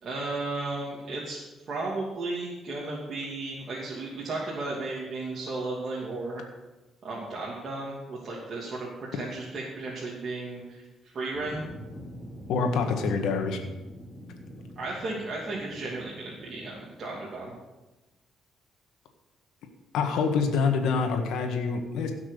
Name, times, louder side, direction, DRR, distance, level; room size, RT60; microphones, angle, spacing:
voice 1, 0.0-1.4 1.7-6.4 7.0-10.8 11.1-11.6 14.8-17.5, right 2 dB, 45° right, -5 dB, 2.7 m, -34 dB
sound 1, 11.3-16.7, equal, ahead, 3.8 m, -44 dB
voice 2, 12.5-13.6 19.9-22.1, left 5 dB, 90° left, 4 dB, 1.6 m, -26 dB
16.5 x 6.0 x 6.7 m, 1.1 s
cardioid pair, 110°, 0 cm